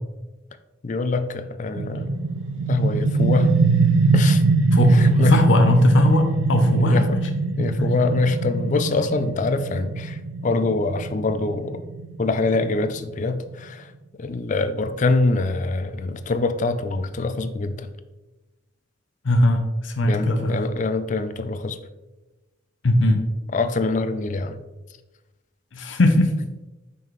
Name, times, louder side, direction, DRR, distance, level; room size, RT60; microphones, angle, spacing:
voice 1, 0.8-2.2 2.7-3.5 4.1-4.4 4.9-5.4 6.8-7.2 7.6-11.8 12.2-13.9 14.2-17.9 20.0-21.8 23.5-24.6, left 3 dB, 40° left, 10 dB, 0.4 m, -24 dB
sound 1, 1.8-13.2, right 3 dB, 80° right, 0.5 m, -22 dB
voice 2, 4.7-7.2 7.8-7.9 19.2-20.6 22.8-23.3 25.7-26.3, left 1 dB, 85° left, 5 dB, 0.6 m, -19 dB
5.6 x 5.3 x 3.1 m, 1.1 s
head